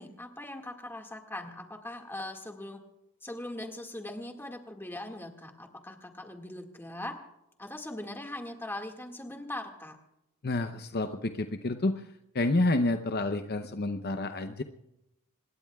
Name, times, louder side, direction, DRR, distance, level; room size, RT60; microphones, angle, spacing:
voice 1, 0.0-2.8 3.2-7.2 7.6-10.0, left 1 dB, 10° left, 3 dB, 1.9 m, -40 dB
voice 2, 10.4-12.1 12.3-14.6, left 2 dB, 45° left, 7 dB, 0.7 m, -29 dB
26.5 x 21.0 x 2.4 m, 0.86 s
head